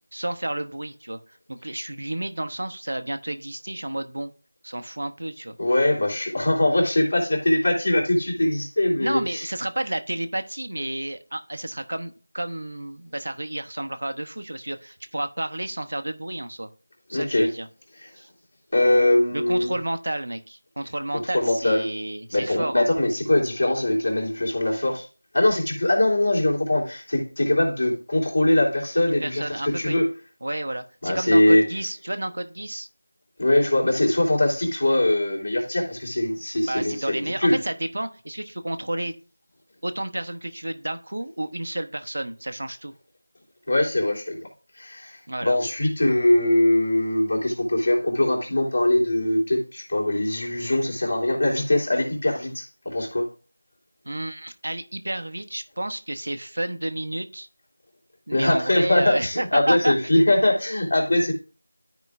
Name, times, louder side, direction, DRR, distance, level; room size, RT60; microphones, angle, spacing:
voice 1, 0.1-1.2 1.5-4.3 4.6-5.6 9.0-16.7 17.1-17.7 18.2-18.3 19.3-22.9 29.1-30.0 30.4-32.9 36.7-39.1 39.8-42.9 45.3-45.6 54.1-57.5 58.3-60.2, right 1 dB, 65° right, 8 dB, 0.9 m, -31 dB
voice 2, 5.6-9.5 17.1-17.5 18.0-18.1 18.7-19.8 21.3-21.8 22.3-25.1 25.3-30.1 31.0-31.6 33.4-37.6 43.7-44.5 44.8-53.3 58.3-61.3, left 1 dB, 55° left, -1 dB, 3.0 m, -22 dB
13.0 x 4.9 x 2.3 m, 0.36 s
figure-of-eight pair, 175°, 0 cm